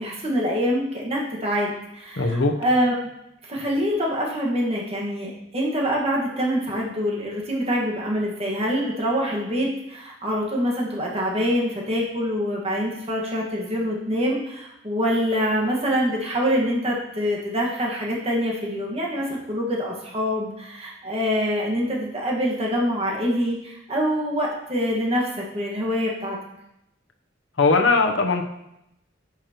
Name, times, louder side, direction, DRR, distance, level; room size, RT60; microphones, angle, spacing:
voice 1, 0.0-2.9 3.5-26.4, equal, 30° right, -3 dB, 1.6 m, -25 dB
voice 2, 2.2-2.5 27.6-28.4, left 3 dB, 70° left, 3 dB, 0.8 m, -19 dB
9.8 x 6.1 x 3.0 m, 0.84 s
head